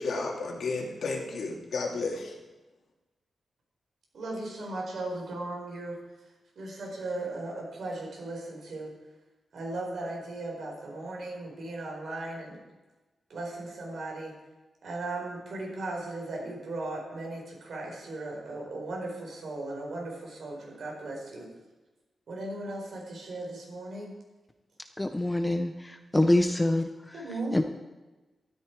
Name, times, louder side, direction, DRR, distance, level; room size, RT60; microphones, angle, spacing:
voice 1, 0.0-2.3, left 3 dB, 70° left, 0 dB, 2.4 m, -32 dB
voice 2, 4.1-6.0 6.6-8.9 9.5-12.6 13.3-14.3 14.8-21.5 22.3-24.1 27.1-27.6, right 2 dB, 65° right, -1 dB, 4.7 m, -37 dB
voice 3, 25.0-26.9 27.5-27.6, left 1 dB, 10° left, 7 dB, 0.6 m, -25 dB
13.0 x 13.0 x 4.7 m, 1.2 s
wide cardioid pair, 160°, 0 cm